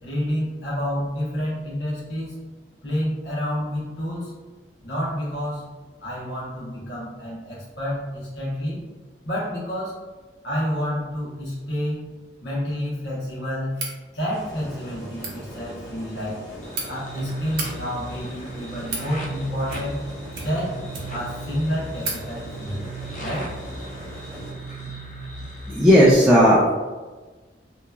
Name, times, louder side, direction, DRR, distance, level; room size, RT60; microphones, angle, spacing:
voice 1, 0.0-2.4 2.8-4.3 4.8-5.7 6.0-8.8 9.2-9.9 10.4-12.1 12.4-13.8 14.1-16.4 16.9-20.1 20.4-20.8 21.1-22.8 23.2-23.5, equal, 80° left, -7 dB, 1.0 m, -29 dB
sound 1, 13.7-14.0 15.1-15.3 16.3-16.9 17.4-17.7 18.5-19.1 19.6-20.0 20.3-21.3 21.6-21.7 22.0-22.2, right 3 dB, 65° right, 0.6 m, -33 dB
sound 2, 14.3-24.5, right 1 dB, 25° left, 1.5 m, -40 dB
sound 3, 16.6-26.1, right 2 dB, 50° left, 0.5 m, -37 dB
voice 2, 25.7-26.7, equal, 5° right, -9 dB, 0.4 m, -14 dB
2.9 x 2.3 x 2.3 m, 1.3 s
head